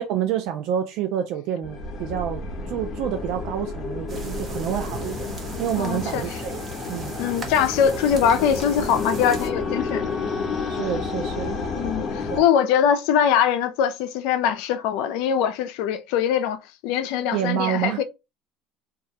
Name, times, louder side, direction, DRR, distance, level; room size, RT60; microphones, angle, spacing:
voice 1, 0.0-2.4 2.7-5.3 5.6-6.6 6.9-7.2 10.7-11.6 12.3-12.5 17.3-18.0, right 10 dB, 70° right, 0.3 m, -28 dB
sound 1, 1.6-12.4, left 4 dB, 40° left, 0.7 m, -31 dB
sound 2, 4.1-9.5, right 4 dB, 35° right, 0.7 m, -38 dB
voice 2, 5.8-6.4 7.2-10.1 11.8-18.0, left 8 dB, 75° left, 0.3 m, -22 dB
Wind instrument woodwind instrument, 7.9-13.0, left 2 dB, ahead, 0.6 m, -38 dB
2.3 x 2.1 x 2.7 m
supercardioid pair, 100°, 0 cm